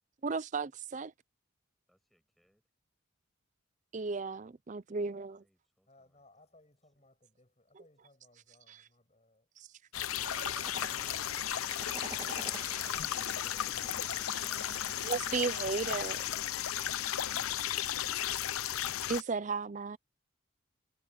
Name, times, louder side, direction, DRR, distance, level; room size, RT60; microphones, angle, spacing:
voice 1, 0.2-1.1 3.9-5.4 15.0-16.2 19.1-20.0, right 4 dB, 35° right, 0.4 m, -34 dB
voice 2, 1.9-2.6 4.9-6.5 6.8-7.0, equal, ahead, 7.5 m, -74 dB
voice 3, 5.9-9.7, left 2 dB, 30° left, 6.8 m, -66 dB
sound 1, 9.9-19.2, left 11 dB, 90° left, 0.7 m, -35 dB
sound 2, 10.2-15.8, right 3 dB, 20° right, 1.9 m, -48 dB
head